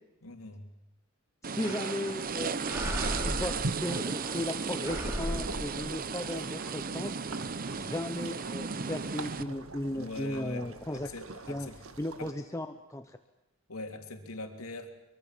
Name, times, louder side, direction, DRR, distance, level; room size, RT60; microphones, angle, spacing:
voice 1, 0.2-0.7 1.6-1.8 9.9-11.8 12.2-12.3 13.7-14.9, left 2 dB, 85° left, 4 dB, 3.2 m, -42 dB
voice 2, 1.4-2.9 3.2-7.2 7.7-11.1 11.5-11.7 12.0-13.2, left 1 dB, 15° left, 7 dB, 0.9 m, -36 dB
sound 1, 1.4-9.4, right 5 dB, 40° right, 0.8 m, -35 dB
sound 2, 1.6-2.2 2.6-4.5 4.8-6.4, equal, 10° right, 3.5 m, -37 dB
sound 3, 2.1-12.3, right 2 dB, 75° right, 1.9 m, -44 dB
24.5 x 23.0 x 7.5 m, 0.90 s
head